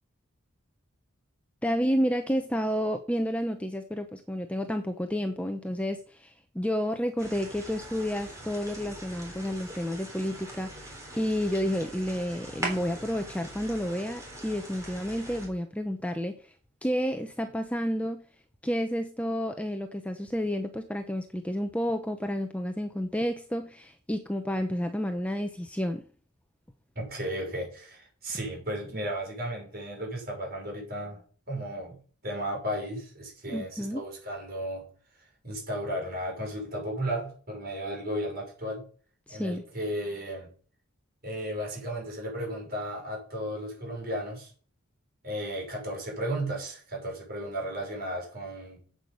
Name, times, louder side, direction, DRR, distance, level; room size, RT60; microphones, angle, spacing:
voice 1, 1.6-10.7 11.2-16.3 16.8-18.2 18.6-26.0 33.5-34.0 39.3-39.6, equal, 5° left, 6 dB, 0.7 m, -30 dB
sound 1, 7.2-15.5, right 1 dB, 15° right, 3.6 m, -41 dB
voice 2, 26.9-31.2 31.5-34.9 35.4-38.8 39.3-40.5 41.2-44.5 45.2-48.8, equal, 45° right, -1 dB, 6.1 m, -34 dB
8.9 x 8.0 x 6.8 m, 0.43 s
head